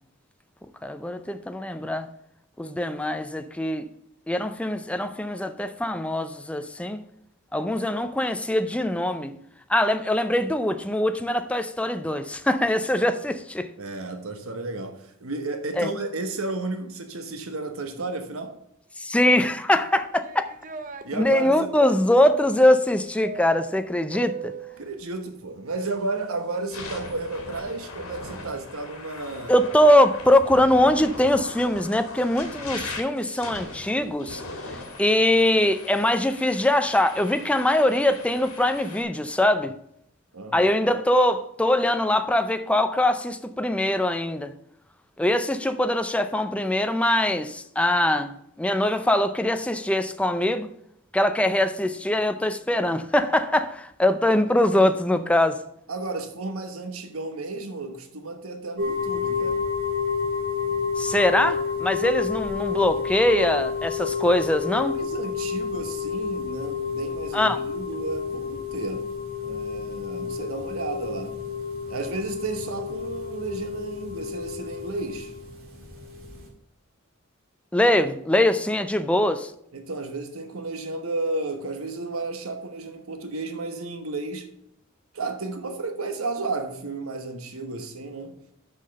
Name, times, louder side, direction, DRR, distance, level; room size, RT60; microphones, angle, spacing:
voice 1, 0.8-2.1 2.6-3.9 4.3-7.0 7.5-9.4 9.7-13.7 15.8-15.9 19.0-20.5 21.1-24.5 29.5-34.4 34.7-39.7 40.5-44.5 45.2-50.7 51.1-55.6 61.0-65.0 67.3-67.6 77.7-79.5, left 1 dB, 5° left, 0.4 m, -22 dB
voice 2, 13.8-18.5 21.0-21.7 24.8-29.6 40.3-40.7 55.9-59.6 64.9-69.1 69.4-71.4 71.9-75.3 79.0-79.3 79.7-84.5 85.1-88.3, right 3 dB, 90° right, 1.2 m, -32 dB
sound 1, 19.8-21.1 23.2-24.9, right 5 dB, 40° right, 0.6 m, -38 dB
sound 2, 25.8-26.1 26.6-39.0, left 2 dB, 85° left, 1.9 m, -40 dB
sound 3, 58.8-76.5, left 6 dB, 65° right, 2.0 m, -30 dB
6.4 x 5.6 x 6.6 m
head